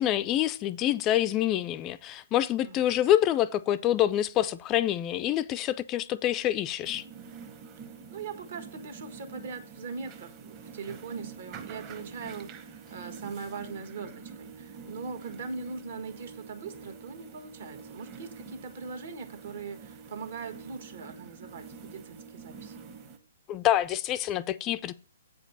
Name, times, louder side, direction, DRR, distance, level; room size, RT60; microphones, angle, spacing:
voice 1, 0.0-7.0 23.5-24.9, left 12 dB, 25° left, 0.3 m, -26 dB
sound 1, 6.8-23.2, right 6 dB, 30° right, 1.0 m, -46 dB
voice 2, 8.1-22.9, right 4 dB, 60° right, 1.5 m, -41 dB
8.3 x 5.1 x 5.5 m
hypercardioid pair, 140°, 0 cm